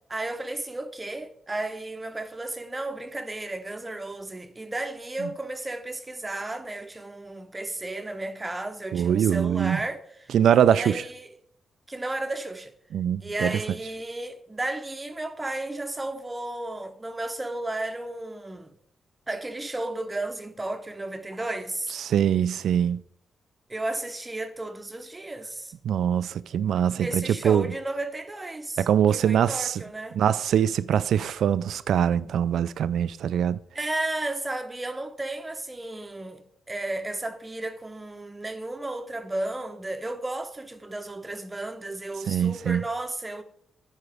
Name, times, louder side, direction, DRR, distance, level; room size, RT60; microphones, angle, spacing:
voice 1, 0.1-10.3 10.7-11.3 11.9-12.7 13.2-18.7 19.3-22.0 23.7-25.7 27.0-28.9 29.1-30.2 33.7-43.4, right 2 dB, 15° right, 0.8 m, -33 dB
voice 2, 8.9-9.8 10.3-11.0 12.9-13.6 22.0-23.0 25.8-27.7 28.8-29.8 30.1-33.6 42.3-42.8, right 9 dB, 75° right, 0.3 m, -23 dB
13.5 x 4.8 x 3.4 m
cardioid pair, 125°, 0 cm